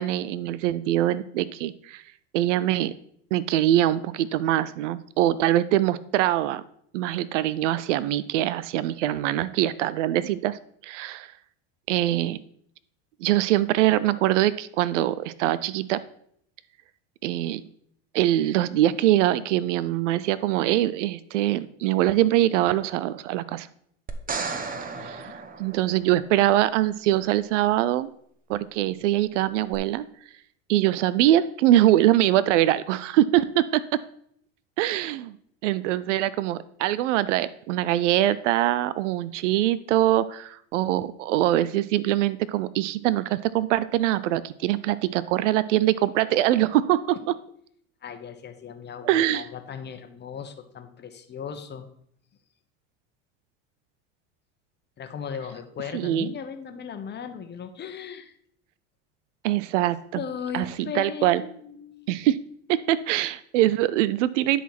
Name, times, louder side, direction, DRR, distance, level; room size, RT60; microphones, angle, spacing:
voice 1, 0.0-2.0 2.3-2.9 3.3-6.6 6.9-11.3 11.9-12.4 13.2-16.0 17.2-17.6 18.1-23.7 25.0-25.3 25.6-28.1 28.5-30.0 30.7-34.0 34.8-35.4 35.6-47.2 49.0-49.4 55.9-56.3 59.4-60.2 60.5-61.4 62.1-62.4 62.7-64.6, right 13 dB, 90° right, 17 dB, 0.5 m, -23 dB
sound 1, 24.1-26.4 29.7-29.8, right 4 dB, 25° right, 1.0 m, -34 dB
voice 2, 24.9-25.4 48.0-51.9 55.0-58.4 60.2-62.1, left 7 dB, 30° left, 8 dB, 1.2 m, -37 dB
10.0 x 4.2 x 5.9 m, 0.67 s
supercardioid pair, 105°, 35 cm